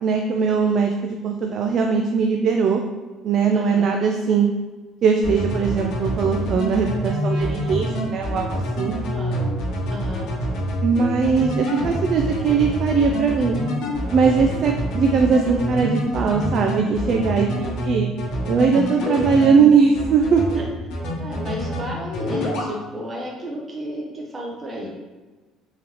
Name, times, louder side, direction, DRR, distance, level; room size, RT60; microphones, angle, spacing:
voice 1, 0.0-2.8 3.2-4.5 5.0-8.9 10.8-13.6 14.1-18.1 18.5-20.4, right 5 dB, 50° right, 3 dB, 0.3 m, -20 dB
voice 2, 3.5-3.9 9.1-9.4 9.9-10.3 20.5-20.7 21.2-24.9, equal, 25° right, -2 dB, 0.7 m, -32 dB
sound 1, 5.2-19.6 19.9-20.6 20.9-21.8 22.1-22.7, equal, 70° left, 1.2 m, -26 dB
3.7 x 3.0 x 3.4 m, 1.3 s
cardioid pair, 120°, 0 cm